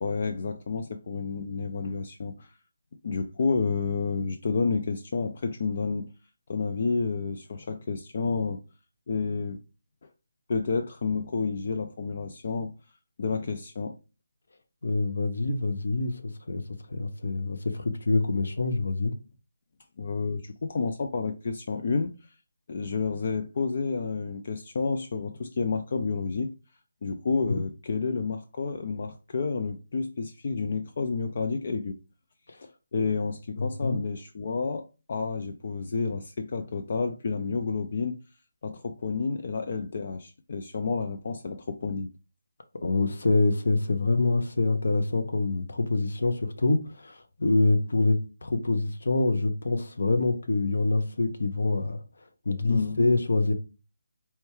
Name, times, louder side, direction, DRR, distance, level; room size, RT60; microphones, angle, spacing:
voice 1, 0.0-2.5 3.0-6.1 6.5-8.6 9.1-9.6 10.5-12.7 13.2-14.0 20.0-22.3 22.7-26.5 27.0-32.0 32.9-38.2 38.6-42.1 52.7-53.1, left 4 dB, 45° left, 0.3 m, -30 dB
voice 2, 14.8-16.6 16.9-19.1 27.5-27.6 33.6-34.0 42.8-52.0 52.5-53.5, left 3 dB, 65° left, 0.7 m, -26 dB
4.3 x 2.3 x 3.0 m
figure-of-eight pair, 165°, 0 cm